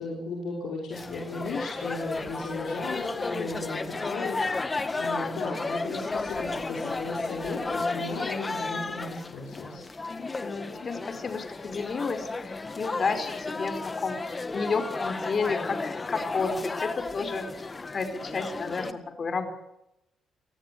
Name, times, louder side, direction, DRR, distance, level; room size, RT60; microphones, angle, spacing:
voice 1, 0.0-9.8, left 3 dB, 80° left, -2 dB, 5.8 m, -35 dB
sound 1, 0.9-18.9, left 3 dB, 25° left, 1.8 m, -33 dB
voice 2, 10.2-19.5, left 4 dB, 40° left, 8 dB, 4.7 m, -32 dB
29.0 x 18.0 x 8.3 m, 0.86 s
cardioid pair, 90°, 0 cm